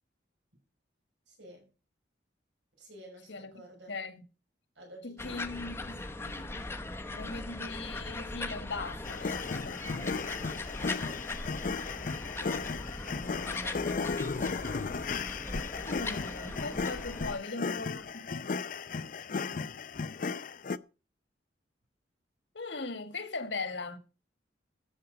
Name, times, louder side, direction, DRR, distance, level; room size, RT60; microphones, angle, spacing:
voice 1, 1.3-1.7 2.8-4.0 4.8-6.2 6.5-6.8 10.9-11.3 11.7-12.4 12.9-15.8, right 1 dB, 80° right, 5.9 m, -54 dB
voice 2, 3.9-4.2 5.0-6.7 7.1-10.3 15.7-18.3 22.5-24.0, left 3 dB, 80° left, 1.7 m, -40 dB
sound 1, 5.2-17.4, left 2 dB, 15° left, 0.9 m, -39 dB
sound 2, 9.0-20.8, left 4 dB, 50° left, 0.5 m, -35 dB
13.5 x 8.3 x 5.1 m
head